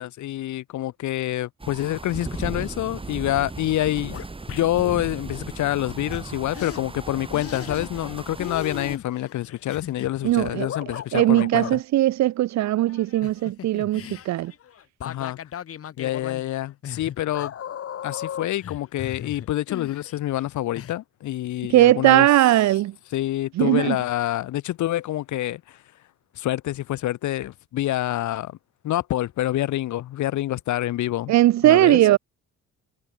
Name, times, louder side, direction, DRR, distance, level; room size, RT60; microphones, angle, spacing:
voice 1, 0.0-4.2 4.5-11.8 15.0-15.4 16.0-17.5 18.0-22.3 23.1-25.8 26.3-28.6 28.8-31.3 31.6-32.2, left 14 dB, 75° left, 1.1 m, -27 dB
sound 1, 1.6-9.0, right 3 dB, 20° right, 2.4 m, -36 dB
sound 2, 3.7-4.9 6.1-6.2 6.5-6.8 7.3-8.1 8.4-11.8 12.9-20.4 20.7-20.9, left 9 dB, 50° left, 1.0 m, -37 dB
voice 2, 10.2-10.7 11.1-14.5 21.7-22.9 23.6-24.0 31.3-32.2, right 15 dB, 65° right, 0.6 m, -19 dB
cardioid pair, 90°, 30 cm